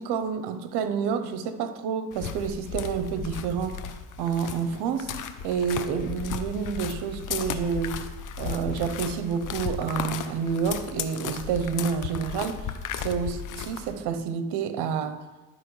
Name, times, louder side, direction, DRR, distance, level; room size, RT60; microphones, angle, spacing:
voice 1, 0.0-3.9 4.2-5.1 5.4-8.0 8.4-15.2, right 7 dB, 75° right, 10 dB, 0.8 m, -29 dB
sound 1, 2.1-14.0, left 7 dB, 50° left, 0.7 m, -35 dB
12.0 x 5.0 x 3.2 m, 1.2 s
cardioid pair, 105°, 41 cm